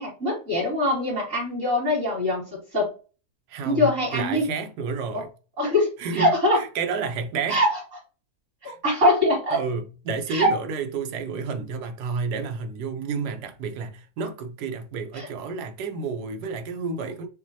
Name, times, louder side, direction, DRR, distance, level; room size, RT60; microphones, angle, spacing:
voice 1, 0.0-2.9 3.6-4.4 5.1-5.2 5.6-6.6 7.5-7.7 8.6-9.6 10.3-10.5 15.1-15.3, left 1 dB, 50° right, 2.9 m, -23 dB
voice 2, 3.5-5.3 6.0-7.6 8.6-8.8 9.5-17.3, right 5 dB, 85° right, 1.3 m, -30 dB
6.2 x 2.2 x 2.7 m
omnidirectional pair, 1.7 m